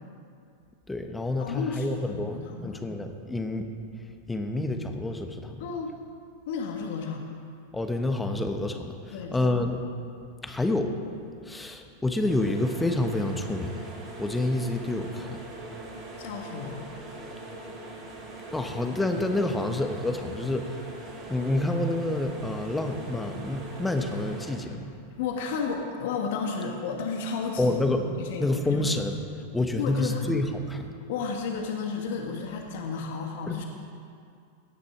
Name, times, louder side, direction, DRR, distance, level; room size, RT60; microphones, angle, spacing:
voice 1, 0.9-3.7 4.3-5.6 7.7-9.8 10.4-10.9 11.4-13.8 14.2-15.4 18.5-20.8 21.3-24.9 27.6-28.0 28.4-29.2 29.5-30.9, left 2 dB, 10° left, 5 dB, 1.2 m, -28 dB
voice 2, 1.4-2.8 5.6-5.9 6.5-7.2 9.1-9.5 16.2-16.9 25.2-27.8 28.2-28.9 29.8-30.3 31.1-33.6, left 5 dB, 65° left, 2 dB, 1.4 m, -32 dB
sound 1, 12.3-24.6, right 2 dB, 40° right, 3.8 m, -42 dB
17.5 x 6.8 x 6.0 m, 2.4 s
hypercardioid pair, 100°, 0 cm